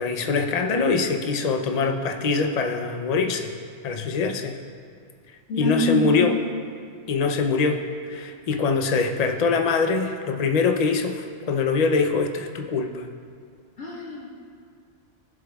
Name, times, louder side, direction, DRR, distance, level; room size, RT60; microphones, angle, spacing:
voice 1, 0.0-3.5 3.8-4.6 5.6-6.4 7.1-13.1, left 4 dB, 40° left, 4 dB, 0.6 m, -23 dB
voice 2, 5.5-6.2 13.8-14.4, right 1 dB, 85° left, -3 dB, 2.1 m, -26 dB
17.5 x 7.4 x 2.3 m, 2.2 s
omnidirectional pair, 1.3 m